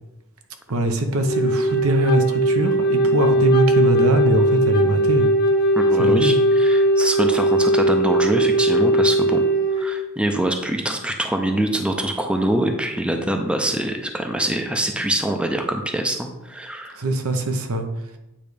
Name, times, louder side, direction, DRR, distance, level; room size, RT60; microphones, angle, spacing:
voice 1, 0.7-5.3 6.0-6.4 16.9-17.9, right 1 dB, 80° right, 6 dB, 0.9 m, -22 dB
Wind instrument woodwind instrument, 1.2-9.9, right 1 dB, 45° left, 0.9 m, -19 dB
voice 2, 5.8-9.4 9.8-17.0, right 1 dB, 5° right, 4 dB, 0.5 m, -24 dB
8.8 x 3.2 x 5.1 m, 0.91 s
head